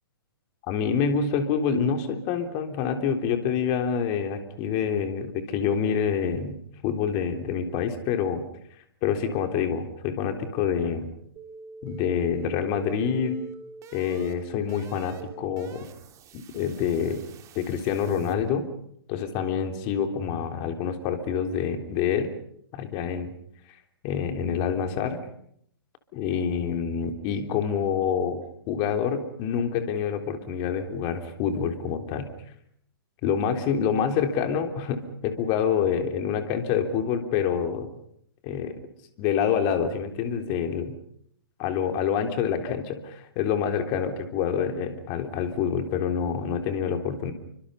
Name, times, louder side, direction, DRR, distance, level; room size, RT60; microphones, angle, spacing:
voice 1, 0.7-6.6 6.8-8.4 9.0-11.1 11.8-13.4 13.9-15.9 16.3-17.2 17.5-18.7 19.1-22.3 22.7-23.3 24.0-25.2 26.1-28.4 28.7-32.3 33.2-37.9 38.4-38.7 39.2-40.9 41.6-47.3, left 7 dB, 35° left, 6 dB, 3.5 m, -27 dB
sound 1, 11.4-18.4, right 3 dB, 25° right, 3.1 m, -45 dB
29.0 x 25.0 x 5.6 m, 0.70 s
figure-of-eight pair, 120°, 13 cm